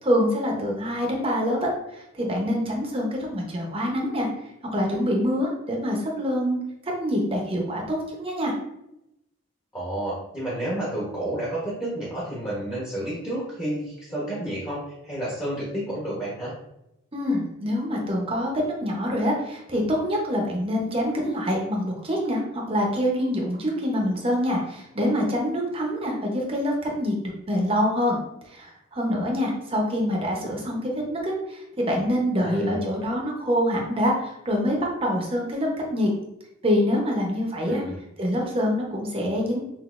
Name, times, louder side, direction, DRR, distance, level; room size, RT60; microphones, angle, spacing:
voice 1, 0.0-4.3 4.7-6.6 7.0-8.5 17.1-28.2 28.5-36.1 36.6-37.8 38.2-39.6, equal, 25° right, -1 dB, 0.8 m, -25 dB
voice 2, 9.7-16.5 32.4-32.8 37.6-38.0, right 1 dB, 15° left, -7 dB, 1.0 m, -30 dB
5.9 x 2.6 x 2.5 m, 0.85 s
head